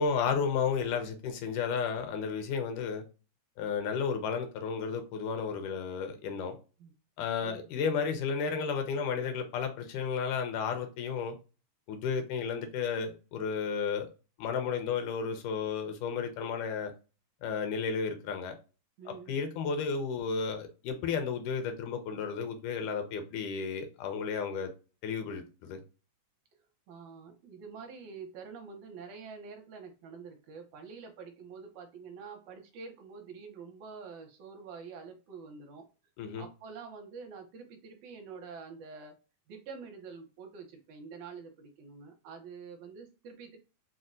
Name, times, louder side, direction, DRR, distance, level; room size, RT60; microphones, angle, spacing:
voice 1, 0.0-3.0 3.6-6.6 7.2-11.4 11.9-14.1 14.4-16.9 17.4-18.6 19.1-24.7 25.0-25.8 36.2-36.5, left 6 dB, 80° left, 2.1 m, -33 dB
voice 2, 19.0-19.4 26.9-35.8 36.4-39.1 39.5-43.6, right 5 dB, 75° right, 2.0 m, -47 dB
5.3 x 2.1 x 2.5 m
omnidirectional pair, 3.6 m